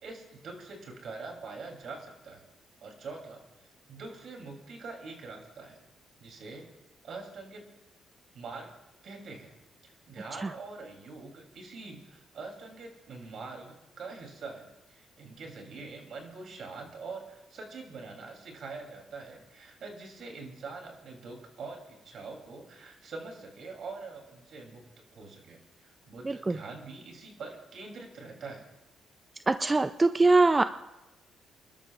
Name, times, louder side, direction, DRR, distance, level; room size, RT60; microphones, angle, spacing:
voice 1, 0.0-2.4 2.8-3.4 3.9-5.8 6.2-6.7 7.0-7.7 8.3-8.7 9.0-9.5 9.8-24.8 25.1-28.7, right 3 dB, 65° right, 1 dB, 3.1 m, -44 dB
voice 2, 26.3-26.6 29.5-30.6, right 3 dB, 25° right, 11 dB, 0.4 m, -23 dB
29.5 x 12.5 x 2.4 m, 0.98 s
cardioid pair, 80°, 0 cm